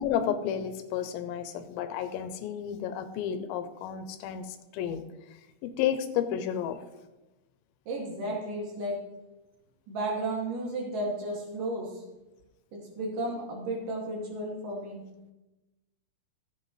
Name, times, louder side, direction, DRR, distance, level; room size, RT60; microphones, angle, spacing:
voice 1, 0.0-4.5 4.7-5.0 5.6-6.8, left 9 dB, 90° left, 10 dB, 2.5 m, -31 dB
voice 2, 7.9-9.0 9.9-11.9 13.0-15.0, right 1 dB, 65° right, -2 dB, 3.8 m, -33 dB
14.5 x 7.9 x 3.2 m, 1.0 s
omnidirectional pair, 4.2 m